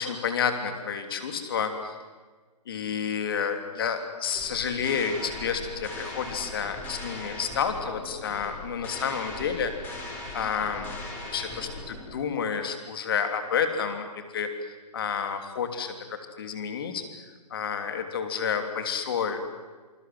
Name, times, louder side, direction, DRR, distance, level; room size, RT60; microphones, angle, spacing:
voice 1, 0.0-2.0 2.7-9.7 10.3-11.0 11.3-14.1 14.3-14.5 14.9-19.4, left 7 dB, 35° left, 7 dB, 3.1 m, -30 dB
sound 1, 4.3-12.2, left 1 dB, 10° left, 4.2 m, -39 dB
27.0 x 27.0 x 7.8 m, 1.4 s
hypercardioid pair, 170°, 21 cm